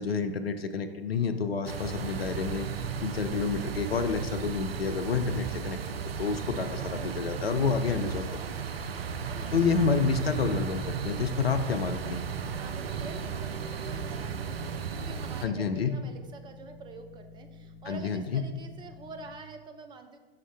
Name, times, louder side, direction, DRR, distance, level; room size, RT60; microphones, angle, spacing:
voice 1, 0.0-2.7 3.0-8.3 9.5-12.2 15.4-15.9 17.9-18.4, left 5 dB, 80° left, 7 dB, 0.6 m, -29 dB
sound 1, 1.6-15.5, right 6 dB, 80° right, 0.5 m, -35 dB
voice 2, 6.7-7.2 8.0-8.6 9.3-9.9 12.6-20.2, right 3 dB, 15° right, 6 dB, 0.5 m, -46 dB
sound 2, 8.6-19.3, left 4 dB, 30° left, 1.6 m, -51 dB
6.0 x 5.7 x 3.4 m, 1.3 s
figure-of-eight pair, 95°, 30 cm